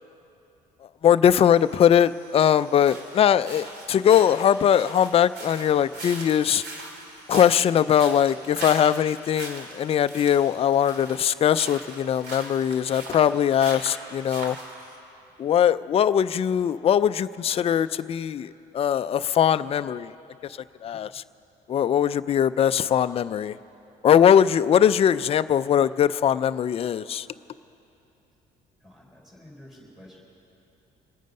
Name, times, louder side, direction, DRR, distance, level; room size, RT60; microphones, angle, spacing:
voice 1, 1.0-6.6 7.3-14.6 15.4-20.1 20.4-21.2 21.7-23.6 24.0-27.3, left 9 dB, 35° left, 13 dB, 0.4 m, -21 dB
sound 1, 1.3-15.0, right 2 dB, 75° right, 2.6 m, -41 dB
voice 2, 28.8-30.2, left 1 dB, ahead, -4 dB, 4.7 m, -49 dB
27.0 x 9.3 x 5.4 m, 2.8 s
cardioid pair, 110°, 17 cm